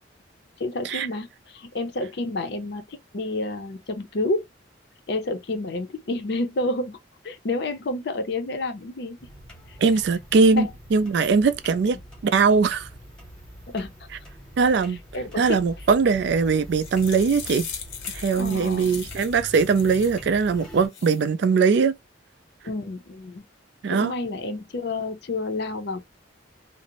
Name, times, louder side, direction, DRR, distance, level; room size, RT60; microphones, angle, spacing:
voice 1, 0.6-4.4 5.1-7.0 7.2-9.2 9.7-9.8 10.5-10.7 13.7-13.9 15.1-15.6 18.4-19.0 22.6-23.4 23.9-26.0, left 2 dB, 60° left, 0.5 m, -29 dB
sound 1, 9.2-20.9, equal, 5° left, 0.9 m, -44 dB
voice 2, 9.8-12.0 12.2-12.9 14.6-15.0 15.4-17.7 18.1-21.9 23.8-24.1, right 5 dB, 60° right, 0.3 m, -21 dB
sound 2, 16.5-20.2 20.7-21.2, left 7 dB, 90° left, 0.8 m, -39 dB
2.5 x 2.0 x 2.7 m
head